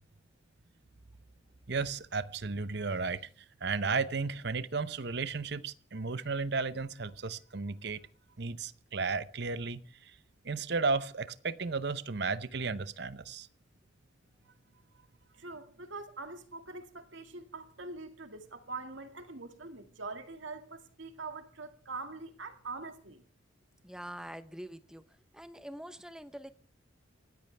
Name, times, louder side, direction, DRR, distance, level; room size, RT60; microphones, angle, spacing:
voice 1, 1.7-3.3 3.6-8.0 8.4-9.8 10.4-13.5, right 4 dB, 55° right, 0.7 m, -34 dB
voice 2, 15.4-23.2, right 3 dB, 70° right, 2.0 m, -43 dB
voice 3, 23.8-25.0 25.3-26.5, equal, 5° right, 0.8 m, -45 dB
28.5 x 13.5 x 3.4 m
head